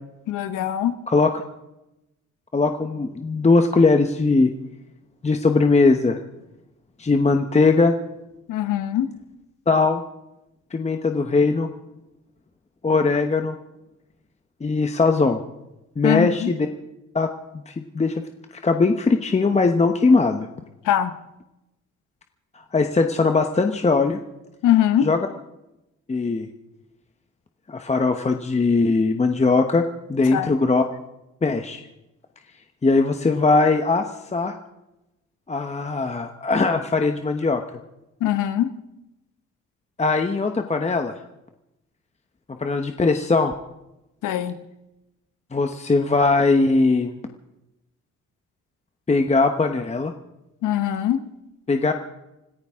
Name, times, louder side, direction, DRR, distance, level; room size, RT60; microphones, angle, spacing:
voice 1, 0.3-0.9 8.5-9.1 16.0-16.5 20.8-21.1 24.6-25.1 30.3-30.5 38.2-38.7 44.2-44.6 50.6-51.2, left 11 dB, 85° left, 11 dB, 1.1 m, -22 dB
voice 2, 2.5-4.5 5.2-6.2 7.0-7.9 9.7-10.0 10.7-11.7 12.8-13.5 14.6-15.4 16.0-16.7 17.1-17.3 17.5-18.1 18.6-20.5 22.7-24.2 25.0-25.2 26.1-26.5 27.7-29.8 30.1-30.8 31.4-31.8 32.8-34.0 34.3-34.5 35.5-37.6 40.0-41.1 42.6-43.5 45.5-47.2 49.1-50.1 51.7-51.9, left 3 dB, 20° left, 6 dB, 1.0 m, -20 dB
26.0 x 14.5 x 3.7 m, 0.93 s
cardioid pair, 90°, 30 cm